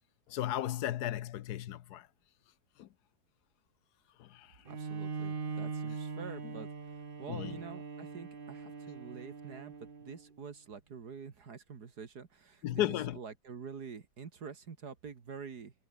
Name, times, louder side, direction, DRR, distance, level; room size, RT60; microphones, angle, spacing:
voice 1, 0.3-2.1 2.8-2.9 4.2-4.6 6.4-6.5 7.3-7.6 12.6-13.2, left 12 dB, 75° left, 1.3 m, -35 dB
Bowed string instrument, 4.6-10.3, right 5 dB, 35° right, 1.4 m, -41 dB
voice 2, 4.7-6.7 7.2-15.7, right 6 dB, 70° right, 2.5 m, -47 dB
omnidirectional pair, 1.8 m